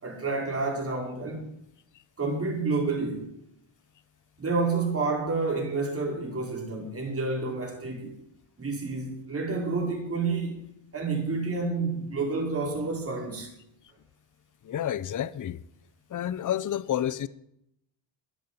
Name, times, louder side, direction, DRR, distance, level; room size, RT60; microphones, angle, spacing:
voice 1, 0.0-1.5 2.2-3.3 4.4-8.1 8.6-10.6 10.9-13.5, right 3 dB, 30° right, 5.5 m, -29 dB
voice 2, 14.6-15.6 16.1-17.3, left 10 dB, 40° left, 0.9 m, -29 dB
14.0 x 10.5 x 9.2 m
cardioid pair, 85°, 49 cm